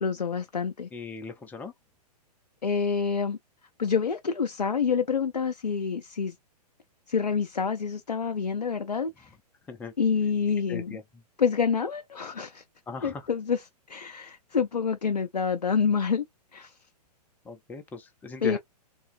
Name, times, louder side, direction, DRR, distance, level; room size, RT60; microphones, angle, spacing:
voice 1, 0.0-0.9 2.6-3.4 3.8-6.4 7.1-9.3 10.0-11.0 11.4-12.6 13.0-16.3 16.5-16.8 18.4-18.6, left 6 dB, 85° left, 0.4 m, -27 dB
voice 2, 0.9-1.7 9.7-9.9 10.7-11.0 12.9-13.2 17.4-18.6, left 4 dB, 10° left, 0.5 m, -38 dB
3.1 x 2.2 x 2.5 m
figure-of-eight pair, 115°, 21 cm